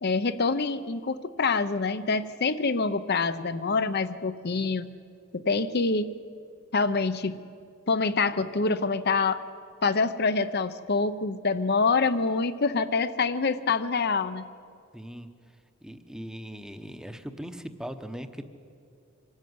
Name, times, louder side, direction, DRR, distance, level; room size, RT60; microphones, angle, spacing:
voice 1, 0.0-4.9 5.3-6.1 6.7-7.3 7.9-9.4 9.8-14.4, left 4 dB, 50° left, 12 dB, 0.8 m, -26 dB
voice 2, 14.9-15.3 15.8-18.4, equal, 5° right, 8 dB, 0.9 m, -39 dB
24.5 x 13.0 x 9.5 m, 2.4 s
head